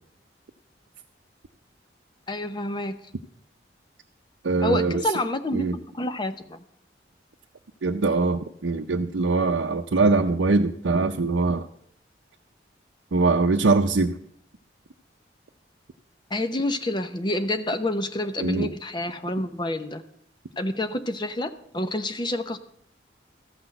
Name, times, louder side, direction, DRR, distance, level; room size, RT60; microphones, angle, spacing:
voice 1, 2.3-3.0 4.6-6.6 16.3-20.0 20.6-22.6, left 1 dB, 25° left, 9 dB, 0.7 m, -28 dB
voice 2, 4.4-5.0 5.5-5.7 7.8-11.7 13.1-14.2 18.4-18.7, right 3 dB, 80° right, 2 dB, 0.6 m, -22 dB
14.0 x 6.1 x 7.7 m, 0.67 s
head